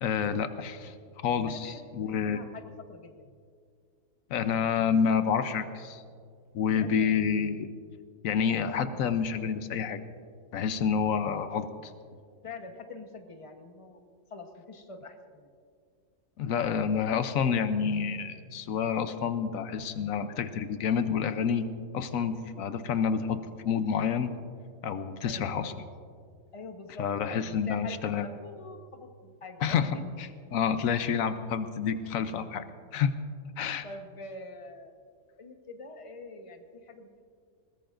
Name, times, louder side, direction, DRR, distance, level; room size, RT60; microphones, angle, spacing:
voice 1, 0.0-0.9 1.2-2.4 4.3-6.0 6.5-7.7 8.2-10.0 10.5-11.9 16.4-21.7 21.9-24.3 24.8-25.7 27.0-28.3 29.6-32.6 32.9-33.1 33.6-33.8, left 7 dB, 90° left, 10 dB, 1.2 m, -28 dB
voice 2, 1.5-2.6 2.9-3.1 6.7-7.3 12.4-14.0 14.3-15.5 25.2-25.7 26.5-30.0 33.8-35.0 35.4-37.2, left 3 dB, 25° left, 4 dB, 1.1 m, -45 dB
21.0 x 18.5 x 2.6 m, 2.1 s
omnidirectional pair, 1.4 m